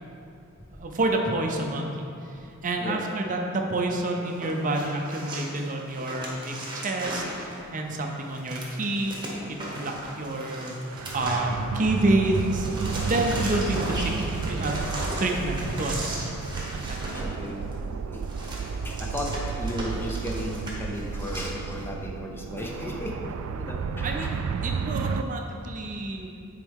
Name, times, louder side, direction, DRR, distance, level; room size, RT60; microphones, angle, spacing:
voice 1, 0.7-12.7 13.0-14.1 14.4-14.8 15.2-16.3 16.7-17.2 24.0-26.3, right 2 dB, 40° right, 2 dB, 0.6 m, -29 dB
sound 1, 4.3-12.0 12.2-21.5, right 1 dB, 20° right, 1.2 m, -36 dB
sound 2, 10.9-25.2, right 5 dB, 80° right, 0.3 m, -32 dB
sound 3, 15.6-17.7 18.1-18.2, left 1 dB, 85° left, 1.4 m, -41 dB
voice 2, 17.1-18.2 18.6-24.3, equal, 10° left, -1 dB, 0.6 m, -35 dB
9.2 x 4.6 x 3.6 m, 2.6 s
head